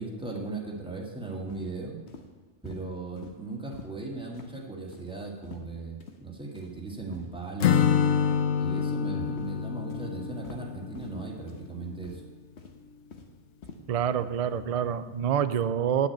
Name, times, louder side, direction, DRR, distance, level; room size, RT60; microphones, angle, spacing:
voice 1, 0.0-2.0 2.6-7.8 8.5-12.2, right 3 dB, 5° right, -2 dB, 1.8 m, -37 dB
sound 1, 1.5-1.7 2.1-2.3 2.7-2.8 3.2-3.3 3.7-3.9 4.3-4.5 4.9-5.1 5.4-5.7 6.0-6.2 6.6-6.7 7.1-7.3 7.7-7.8 8.2-8.4 8.8-9.0 9.4-9.5 9.9-10.1 10.4-10.6 11.0-11.1 11.5-11.7 12.0-12.3 12.6-13.3 13.6-13.8, left 5 dB, 65° left, 1.3 m, -46 dB
Acoustic guitar / Strum, 7.6-11.5, left 7 dB, 85° left, 1.1 m, -27 dB
voice 2, 13.9-16.1, right 8 dB, 70° right, 12 dB, 0.3 m, -27 dB
9.9 x 6.3 x 8.7 m, 1.3 s
omnidirectional pair, 1.3 m